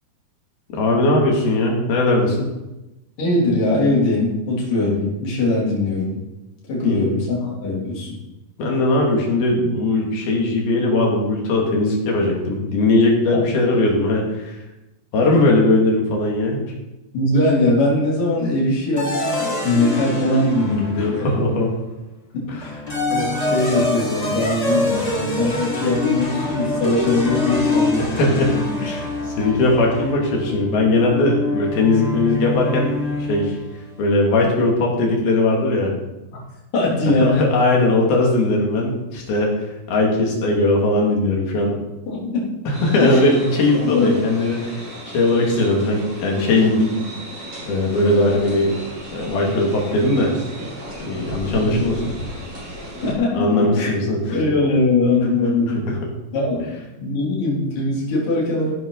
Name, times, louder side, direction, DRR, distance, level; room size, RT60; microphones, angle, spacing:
voice 1, 0.7-2.5 6.8-7.0 8.6-14.5 15.1-16.6 21.0-21.7 22.5-22.6 28.0-32.9 33.3-33.6 34.0-35.9 37.2-39.5 39.9-41.8 42.7-44.9 45.1-47.0 47.6-48.7 49.1-50.3 51.0-52.1 53.3-54.4 55.9-56.0, left 2 dB, 75° left, -1 dB, 4.6 m, -19 dB
voice 2, 3.2-6.2 6.7-8.1 13.3-13.4 17.1-21.5 22.3-22.8 23.1-28.8 36.3-36.4 36.7-37.4 42.1-42.5 43.0-43.2 43.8-44.1 53.0-53.9 54.3-55.8 56.3-58.7, left 2 dB, 60° left, -5 dB, 5.0 m, -21 dB
sound 1, 19.0-21.5 22.6-33.7, left 2 dB, 40° left, 0.5 m, -25 dB
sound 2, 42.7-53.1, right 1 dB, 45° right, 6.8 m, -33 dB
15.0 x 11.0 x 4.1 m, 0.99 s
omnidirectional pair, 4.3 m